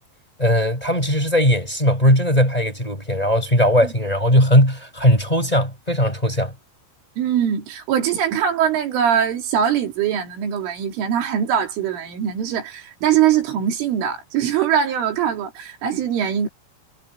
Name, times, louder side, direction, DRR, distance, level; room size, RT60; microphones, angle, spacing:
voice 1, 0.4-6.5, equal, 10° left, 6.0 m, -18 dB
voice 2, 7.2-16.5, right 9 dB, 80° right, 5.7 m, -22 dB
omnidirectional pair, 5.5 m